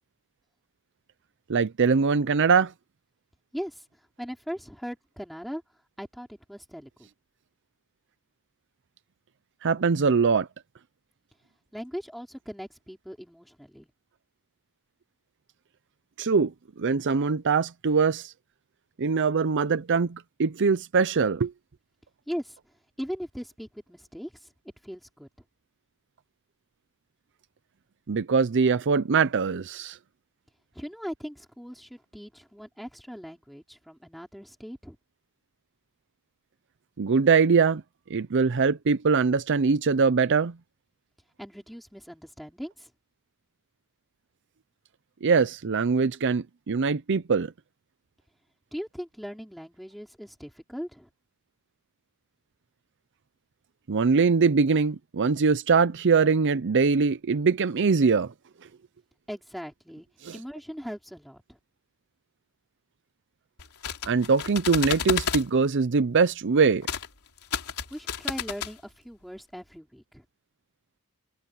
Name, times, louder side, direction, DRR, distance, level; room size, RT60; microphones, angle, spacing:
voice 1, 1.5-2.7 9.6-10.5 16.2-18.3 19.0-21.5 28.1-30.0 37.0-37.8 38.1-40.6 45.2-47.5 53.9-58.3 60.2-60.4 64.1-66.9, right 5 dB, 55° right, 0.6 m, -22 dB
voice 2, 3.5-3.8 4.2-5.6 6.0-7.1 11.7-13.9 22.3-22.6 23.0-24.5 24.8-25.3 30.7-35.0 41.4-42.9 48.7-51.1 59.3-60.1 60.3-61.6 67.9-70.2, equal, ahead, 5.1 m, -39 dB
sound 1, 63.6-65.5 66.8-67.1 67.4-68.7, left 7 dB, 80° left, 3.5 m, -31 dB
head